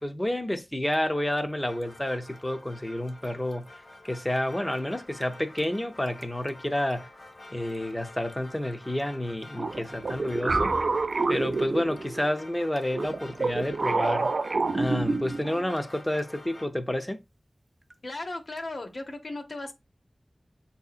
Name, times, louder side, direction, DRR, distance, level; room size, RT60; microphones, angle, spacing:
voice 1, 0.0-3.7 4.0-7.1 7.5-10.8 11.3-14.3 14.7-17.2, left 1 dB, 15° left, 0.5 m, -29 dB
Drip, 0.9-19.1, right 1 dB, 35° right, 0.6 m, -49 dB
sound 1, 1.7-16.7, left 2 dB, 50° left, 1.1 m, -49 dB
sound 2, 9.6-12.3 12.9-15.6, right 3 dB, 80° right, 0.3 m, -28 dB
voice 2, 18.0-19.7, left 2 dB, 75° left, 0.9 m, -36 dB
7.8 x 2.8 x 2.4 m
wide cardioid pair, 70°, 0 cm